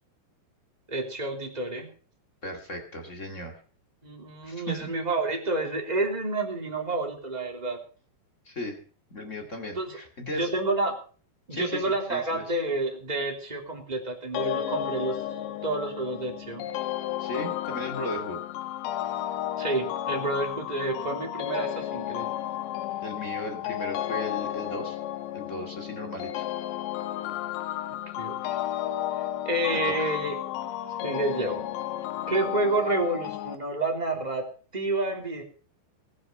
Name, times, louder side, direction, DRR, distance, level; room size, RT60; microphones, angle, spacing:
voice 1, 0.9-1.9 4.0-7.8 9.7-10.0 10.2-11.0 11.5-15.2 15.6-16.7 19.6-22.3 28.2-28.6 29.4-30.4 31.0-31.7 32.3-34.5 34.7-35.4, right 2 dB, 10° right, 1 dB, 2.5 m, -29 dB
voice 2, 2.4-3.6 4.4-4.9 8.4-8.8 9.1-10.5 11.5-12.4 17.2-18.4 23.0-25.0 25.3-26.4 29.7-30.1, left 1 dB, 30° left, 3 dB, 1.3 m, -36 dB
sound 1, 14.4-33.6, left 12 dB, 85° left, 3.1 m, -33 dB
19.5 x 9.6 x 5.6 m, 0.41 s
omnidirectional pair, 5.0 m